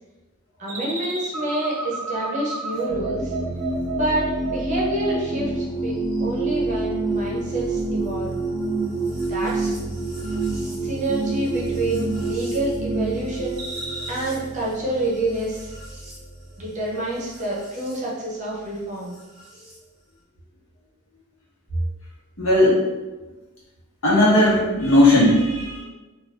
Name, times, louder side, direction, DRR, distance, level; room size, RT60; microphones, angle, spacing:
voice 1, 0.6-3.3 3.9-8.4 9.3-9.7 10.8-13.6 14.1-15.7 16.6-19.2, right 1 dB, 35° right, -5 dB, 0.6 m, -28 dB
sound 1, 0.7-5.6 6.0-6.5 6.8-7.3 7.7-8.1 8.5-9.1 9.4-9.9 10.2-10.7 11.0-11.5 11.9-12.4 12.8-13.2 13.6-14.1, right 3 dB, 75° right, 0.5 m, -30 dB
sound 2, 2.9-18.0 19.1-19.8, right 2 dB, ahead, 0.9 m, -29 dB
voice 2, 22.4-22.8 24.0-25.8, left 1 dB, 65° left, -7 dB, 1.1 m, -16 dB
2.6 x 2.3 x 3.2 m, 1.2 s
head